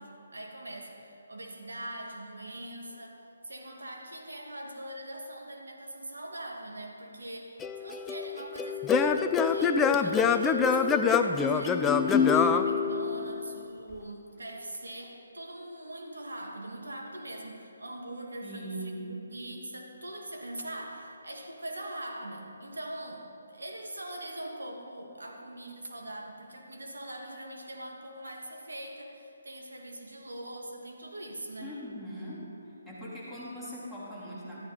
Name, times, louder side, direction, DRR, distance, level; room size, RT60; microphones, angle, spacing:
voice 1, 0.0-3.2 3.4-19.0 19.3-31.7, right 1 dB, 85° right, 1 dB, 1.8 m, -42 dB
Singing / Plucked string instrument, 7.6-13.5, left 6 dB, 10° left, 0.3 m, -25 dB
voice 2, 18.4-19.2 31.6-32.5 32.8-34.6, equal, 5° right, -9 dB, 3.2 m, -40 dB
13.5 x 11.5 x 4.0 m, 2.9 s
hypercardioid pair, 155°, 0 cm